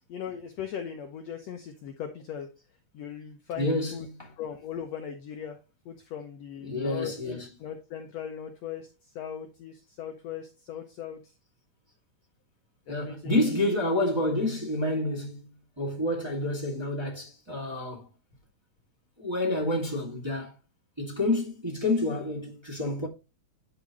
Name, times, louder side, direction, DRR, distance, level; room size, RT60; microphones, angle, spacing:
voice 1, 0.1-2.5 2.9-4.1 4.4-8.9 9.1-11.2 12.9-13.4, left 8 dB, 80° left, 1.5 m, -39 dB
voice 2, 3.6-4.3 6.6-7.5 12.9-18.1 19.2-20.5 21.0-23.1, left 1 dB, 10° right, 1.7 m, -29 dB
10.5 x 5.1 x 3.0 m
omnidirectional pair, 3.9 m